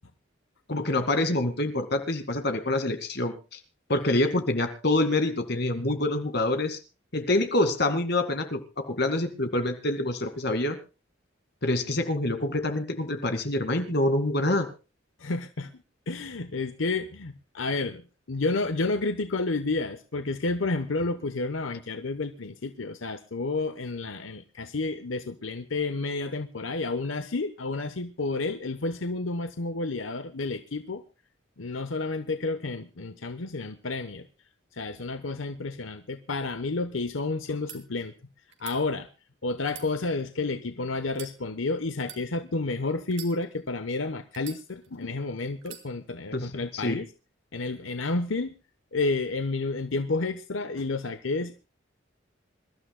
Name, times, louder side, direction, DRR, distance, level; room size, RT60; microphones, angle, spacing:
voice 1, 0.7-3.3 3.9-6.8 7.1-10.8 11.6-14.7 46.3-47.0, left 2 dB, 55° left, 7 dB, 2.2 m, -26 dB
voice 2, 15.2-15.7 16.1-18.0 18.3-31.0 31.6-34.2 34.8-38.1 38.6-39.1 39.4-47.1 47.5-48.5 48.9-51.6, left 3 dB, 85° left, 9 dB, 1.0 m, -30 dB
sound 1, 37.5-37.8 38.5-38.8 39.6-40.5 41.1-41.4 42.0-42.2 43.1-43.8 44.3-45.0 45.6-45.9, right 9 dB, 70° right, 2.7 m, -44 dB
26.5 x 13.0 x 2.2 m, 0.31 s
head